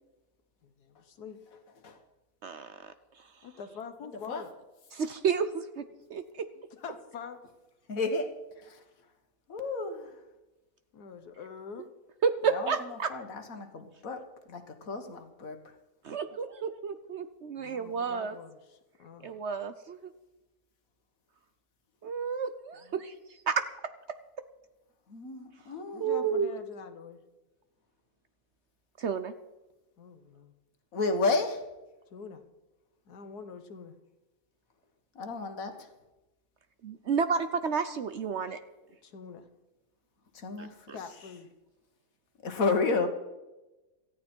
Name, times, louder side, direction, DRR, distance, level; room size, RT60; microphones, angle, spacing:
voice 1, 0.6-1.4 3.4-4.5 6.5-7.4 10.9-11.8 17.6-19.3 25.9-27.2 30.0-30.5 32.1-32.4 33.1-33.9 39.0-39.4 40.9-41.5, left 6 dB, 85° left, 1.7 m, -45 dB
voice 2, 2.4-3.3 4.9-6.5 12.2-13.1 16.0-18.3 19.2-20.1 22.0-23.6 26.0-26.5 29.0-29.3 36.8-38.6 40.6-40.7, right 6 dB, 55° right, 0.8 m, -31 dB
voice 3, 7.9-8.8 9.5-10.2 12.5-15.7 25.1-26.1 30.9-31.7 35.2-35.9 40.3-40.9 42.4-43.1, left 3 dB, 60° left, 1.9 m, -32 dB
18.0 x 14.0 x 4.5 m
omnidirectional pair, 1.6 m